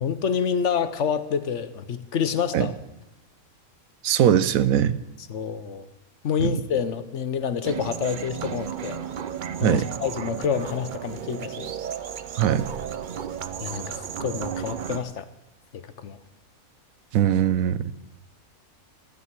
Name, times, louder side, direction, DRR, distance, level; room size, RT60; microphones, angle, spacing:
voice 1, 0.0-2.7 5.3-5.8 6.2-9.0 9.6-11.7 13.6-15.3 15.7-16.2, left 7 dB, 60° left, 12 dB, 1.0 m, -28 dB
voice 2, 4.0-5.0 6.4-6.6 9.6-9.8 12.4-12.6 17.1-18.0, right 10 dB, 75° right, 15 dB, 1.1 m, -21 dB
sound 1, 7.6-15.0, right 8 dB, 55° right, 0.5 m, -34 dB
14.0 x 9.7 x 7.5 m, 0.91 s
omnidirectional pair, 1.5 m